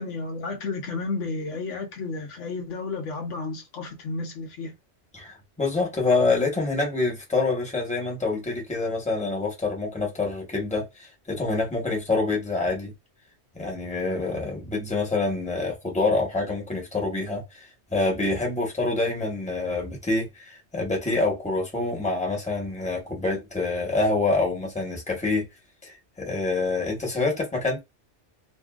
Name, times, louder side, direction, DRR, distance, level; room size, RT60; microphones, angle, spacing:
voice 1, 0.0-4.7, left 3 dB, 80° left, 1.2 m, -32 dB
voice 2, 5.1-12.9 13.5-25.5 25.8-27.8, left 3 dB, 5° left, 1.1 m, -26 dB
2.6 x 2.6 x 2.3 m
omnidirectional pair, 1.2 m